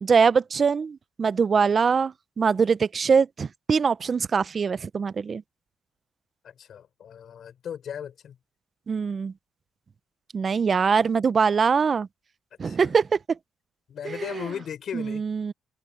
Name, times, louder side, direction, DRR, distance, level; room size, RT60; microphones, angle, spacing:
voice 1, 0.0-5.4 8.9-9.3 10.3-12.1 12.6-13.2 14.0-14.4 14.9-15.5, right 5 dB, 40° right, 0.6 m, -23 dB
voice 2, 6.4-8.4 12.6-12.9 13.9-15.2, left 8 dB, 60° left, 4.9 m, -37 dB
cardioid pair, 90°, 0 cm